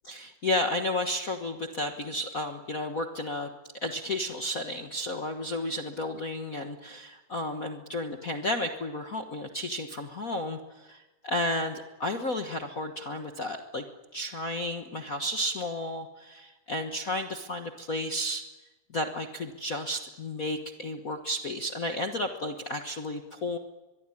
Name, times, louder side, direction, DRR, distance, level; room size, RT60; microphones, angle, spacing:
voice 1, 0.1-3.5 3.8-13.8 14.1-18.4 18.9-23.6, left 1 dB, 85° left, 4 dB, 0.7 m, -32 dB
23.5 x 23.0 x 9.9 m, 1.1 s
omnidirectional pair, 3.8 m